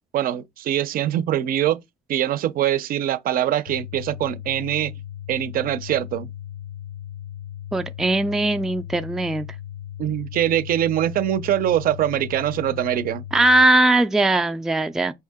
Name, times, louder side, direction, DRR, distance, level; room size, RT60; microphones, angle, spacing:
voice 1, 0.1-1.8 2.1-4.9 5.3-6.3 10.0-13.2, right 11 dB, 60° right, 0.5 m, -23 dB
sound 1, 3.7-13.7, left 11 dB, 80° left, 0.6 m, -37 dB
voice 2, 7.7-9.5 13.3-15.1, right 1 dB, 5° right, 0.3 m, -19 dB
4.6 x 2.6 x 3.5 m
cardioid pair, 110°, 17 cm